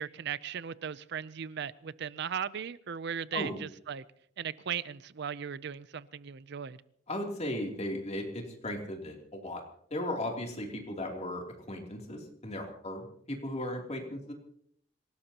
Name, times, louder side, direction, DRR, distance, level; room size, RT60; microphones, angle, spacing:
voice 1, 0.0-4.0 4.4-6.8, right 8 dB, 60° right, 17 dB, 0.5 m, -37 dB
voice 2, 7.1-9.6 9.9-14.3, left 1 dB, 35° left, 1 dB, 3.0 m, -36 dB
26.5 x 17.5 x 2.9 m, 0.66 s
head